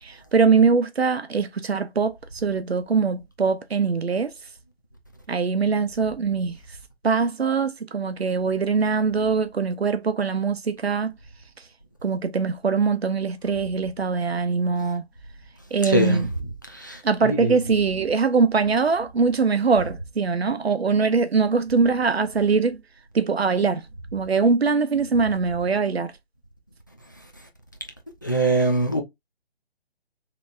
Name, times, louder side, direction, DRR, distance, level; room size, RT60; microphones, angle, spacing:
voice 1, 0.0-4.3 5.3-6.6 7.0-11.1 12.0-15.0 15.7-16.3 17.0-22.8 23.1-23.8 24.1-26.1, right 5 dB, 70° right, 0.8 m, -22 dB
voice 2, 15.9-16.2 16.7-17.5 28.2-29.0, right 2 dB, 20° left, 0.4 m, -22 dB
4.0 x 3.3 x 2.4 m
figure-of-eight pair, 150°, 32 cm